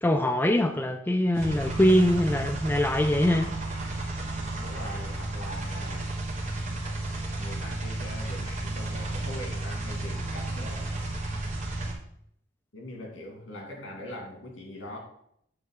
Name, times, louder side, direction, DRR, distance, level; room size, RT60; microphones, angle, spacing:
voice 1, 0.0-3.5, left 1 dB, 10° left, 6 dB, 0.3 m, -23 dB
sound 1, 1.3-11.9, right 2 dB, 35° right, 1.5 m, -33 dB
voice 2, 4.4-6.1 7.4-10.9 12.7-15.0, left 1 dB, 80° left, 0 dB, 2.5 m, -41 dB
8.7 x 3.5 x 6.6 m, 0.72 s
head